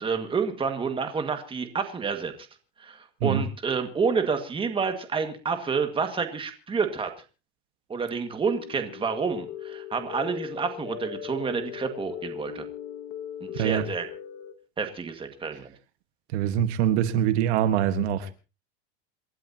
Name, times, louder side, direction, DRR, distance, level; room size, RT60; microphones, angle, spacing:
voice 1, 0.0-2.3 2.8-7.1 7.9-12.7 13.4-14.1 14.8-15.7, right 5 dB, 15° right, 1.9 m, -29 dB
sound 1, 8.4-14.5, left 10 dB, 45° left, 1.9 m, -39 dB
voice 2, 16.3-18.3, right 10 dB, 75° right, 1.5 m, -24 dB
27.5 x 12.5 x 2.9 m
supercardioid pair, 150°, 33 cm